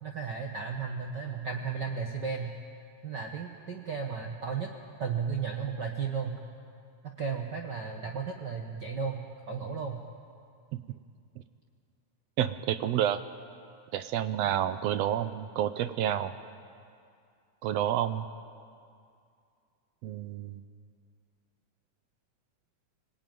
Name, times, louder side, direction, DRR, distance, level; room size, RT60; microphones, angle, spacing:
voice 1, 0.0-2.5 3.0-4.7 5.0-6.4 7.0-9.2 9.5-10.0, right 6 dB, 55° right, 2 dB, 1.2 m, -34 dB
voice 2, 12.4-13.2 13.9-16.3 17.6-18.3 20.0-20.6, right 10 dB, 80° right, 11 dB, 1.5 m, -29 dB
25.0 x 19.0 x 9.2 m, 2.4 s
omnidirectional pair, 3.7 m